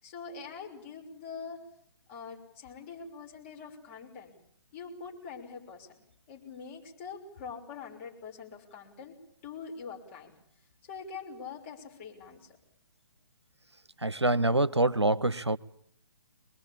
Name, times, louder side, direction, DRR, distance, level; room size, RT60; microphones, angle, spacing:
voice 1, 0.0-1.6 2.1-4.4 4.7-6.0 6.3-9.2 9.4-10.3 10.8-12.6, left 5 dB, 30° left, 6.0 m, -44 dB
voice 2, 14.0-15.6, right 2 dB, 85° right, 0.9 m, -25 dB
25.0 x 21.0 x 8.7 m
figure-of-eight pair, 135°, 14 cm